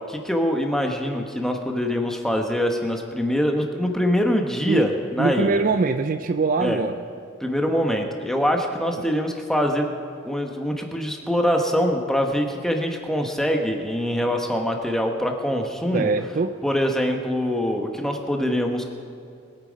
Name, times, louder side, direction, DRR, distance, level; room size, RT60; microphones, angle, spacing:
voice 1, 0.0-5.6 6.6-6.8 7.4-9.9 10.2-16.1 16.6-18.9, equal, ahead, 2 dB, 1.1 m, -24 dB
voice 2, 5.2-7.0 9.0-9.1 15.9-16.6, right 4 dB, 40° right, 9 dB, 0.3 m, -23 dB
21.5 x 9.0 x 5.2 m, 2.4 s
head